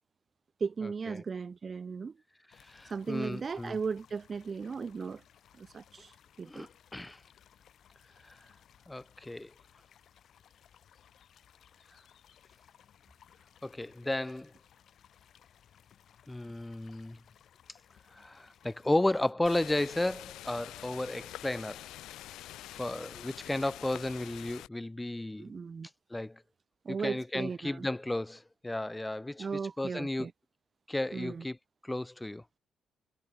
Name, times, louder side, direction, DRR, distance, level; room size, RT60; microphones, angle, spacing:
voice 1, 0.6-2.1 2.8-5.2 5.6-6.7 25.4-25.9 26.8-27.9 29.4-30.3 31.1-31.4, right 5 dB, 40° right, 0.7 m, -36 dB
sound 1, 2.5-19.3, left 9 dB, 65° left, 7.3 m, -62 dB
voice 2, 2.6-3.8 6.4-6.7 6.9-7.2 8.2-8.4 8.9-9.5 13.6-14.5 16.3-17.2 18.1-21.9 22.7-25.5 26.1-26.4 26.9-30.3 30.9-31.6 31.8-32.4, left 1 dB, 10° left, 0.9 m, -33 dB
sound 2, 19.5-24.7, left 14 dB, 85° left, 1.5 m, -46 dB
cardioid pair, 90°, 0 cm